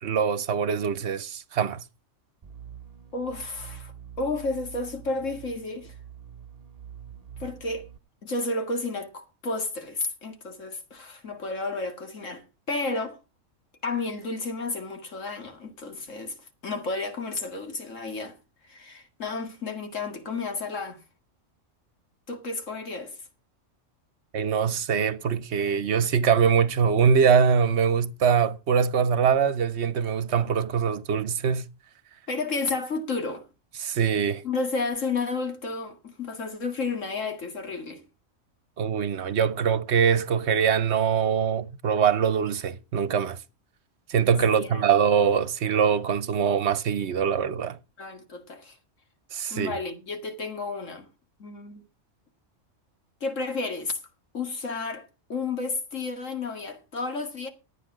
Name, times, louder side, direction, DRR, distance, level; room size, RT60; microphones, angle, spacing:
voice 1, 0.0-1.8 24.3-31.7 33.8-34.4 38.8-43.4 44.1-47.8 49.3-49.8, right 7 dB, 65° right, 1.1 m, -23 dB
sound 1, 2.4-8.0, right 9 dB, 35° right, 0.8 m, -45 dB
voice 2, 3.1-3.9 4.2-5.9 7.4-7.9 8.2-13.2 13.8-16.4 16.6-18.4 18.7-21.0 22.3-23.2 32.3-33.5 34.4-38.0 44.5-44.8 48.0-48.8 49.5-51.1 51.4-51.8 53.2-54.0 54.3-57.5, left 3 dB, 85° left, 2.4 m, -32 dB
12.5 x 9.0 x 6.0 m
omnidirectional pair, 1.3 m